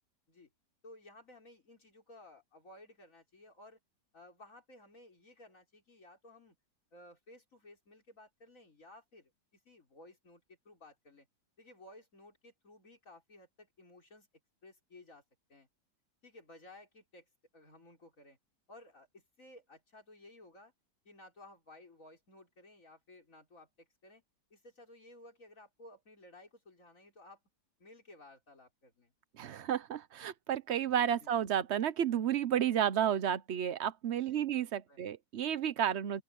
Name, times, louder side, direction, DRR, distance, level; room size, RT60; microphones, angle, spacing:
voice 1, 0.8-3.8 4.1-6.6 6.9-11.3 11.6-14.3 14.6-15.2 15.5-15.7 16.2-17.3 17.5-18.4 18.7-20.7 21.1-24.2 24.5-27.4 27.8-29.1 31.2-31.4 34.2-34.5 34.9-35.1, left 2 dB, 50° left, 5.3 m, -57 dB
voice 2, 29.4-36.2, right 9 dB, 55° right, 0.8 m, -32 dB
open air
omnidirectional pair, 1.8 m